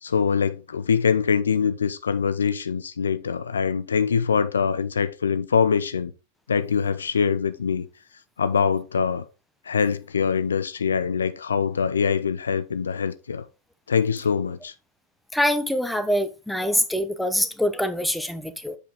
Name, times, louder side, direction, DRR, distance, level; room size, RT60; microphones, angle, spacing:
voice 1, 0.0-6.1 6.5-7.9 8.4-9.2 9.7-13.4 13.9-14.7, left 6 dB, 70° left, 0.5 m, -23 dB
voice 2, 15.3-18.8, equal, ahead, 0.8 m, -24 dB
7.8 x 5.0 x 3.8 m
figure-of-eight pair, 90°, 0 cm